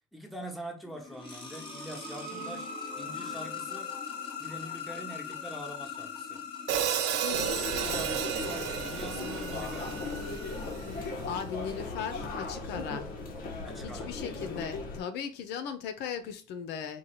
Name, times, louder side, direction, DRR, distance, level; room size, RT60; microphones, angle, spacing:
voice 1, 0.1-2.7 3.0-3.9 4.4-6.4 7.8-10.1 13.6-14.5, right 1 dB, ahead, 1.1 m, -44 dB
sound 1, 0.8-11.6, left 5 dB, 30° left, 1.4 m, -41 dB
Hi-hat, 6.7-10.9, right 9 dB, 90° right, 0.7 m, -33 dB
voice 2, 7.2-7.7 11.2-13.2 13.8-17.0, left 7 dB, 85° left, 0.7 m, -38 dB
sound 2, 7.3-15.0, left 3 dB, 55° left, 1.2 m, -37 dB
4.5 x 2.3 x 4.4 m
cardioid pair, 110°, 17 cm